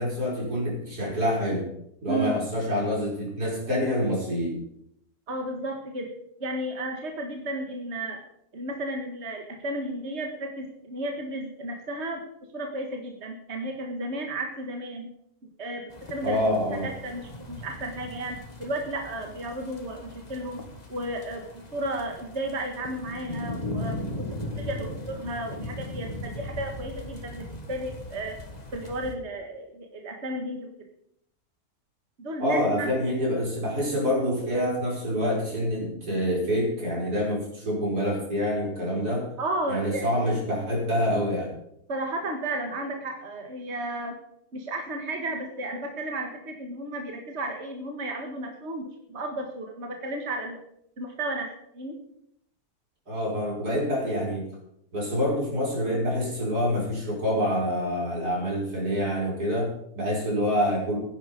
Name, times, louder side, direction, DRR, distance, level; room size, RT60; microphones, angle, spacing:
voice 1, 0.0-1.7 2.0-4.6 16.2-16.9 32.4-39.3 39.7-41.5 53.1-54.4 54.9-61.0, equal, 85° right, -3 dB, 5.7 m, -26 dB
voice 2, 2.1-2.4 5.3-6.1 6.4-8.2 8.5-12.2 12.5-15.1 15.6-16.4 16.8-20.6 20.9-28.4 28.7-30.7 32.2-32.9 39.4-40.1 41.9-44.2 44.5-50.6 51.0-51.5 51.7-52.0, right 1 dB, 45° right, 3 dB, 1.9 m, -33 dB
sound 1, 15.9-29.1, left 1 dB, 25° left, 1.8 m, -38 dB
15.5 x 10.5 x 5.2 m, 0.75 s
omnidirectional pair, 1.6 m